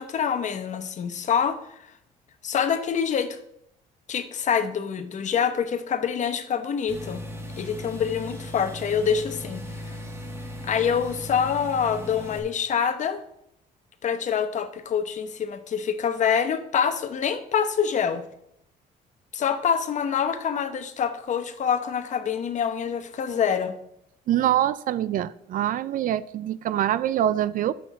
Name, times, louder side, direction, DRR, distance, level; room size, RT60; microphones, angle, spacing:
voice 1, 0.0-1.6 2.4-3.4 4.1-7.2 7.6-10.0 10.6-13.2 14.0-18.2 19.3-23.7, left 7 dB, 45° left, 0.9 m, -26 dB
sound 1, 6.9-12.4, equal, 15° right, 1.8 m, -37 dB
voice 2, 24.3-27.7, right 11 dB, 55° right, 0.4 m, -24 dB
6.1 x 5.9 x 6.9 m
cardioid pair, 110°, 17 cm